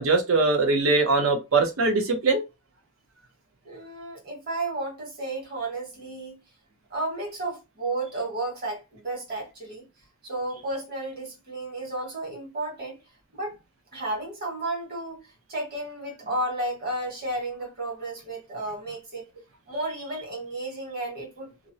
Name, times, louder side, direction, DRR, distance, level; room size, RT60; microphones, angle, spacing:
voice 1, 0.0-2.4, right 3 dB, 65° right, 0.7 m, -22 dB
voice 2, 3.6-6.4 6.9-9.8 10.2-13.0 13.3-13.5 13.9-19.3 19.7-21.7, right 2 dB, 45° right, 1.4 m, -33 dB
2.5 x 2.0 x 2.6 m
head